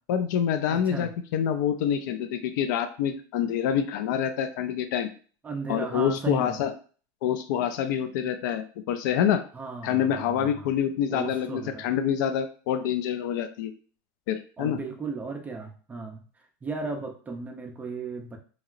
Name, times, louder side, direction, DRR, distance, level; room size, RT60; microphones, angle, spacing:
voice 1, 0.1-5.1 5.7-6.7 7.2-9.4 9.8-13.7 14.3-14.8, left 9 dB, 80° left, 9 dB, 0.4 m, -26 dB
voice 2, 0.7-1.1 5.4-6.6 9.5-10.7 11.1-11.9 14.6-16.2 16.6-18.4, right 4 dB, 15° right, 3 dB, 0.4 m, -35 dB
2.9 x 2.8 x 2.4 m, 0.41 s
supercardioid pair, 140°, 10 cm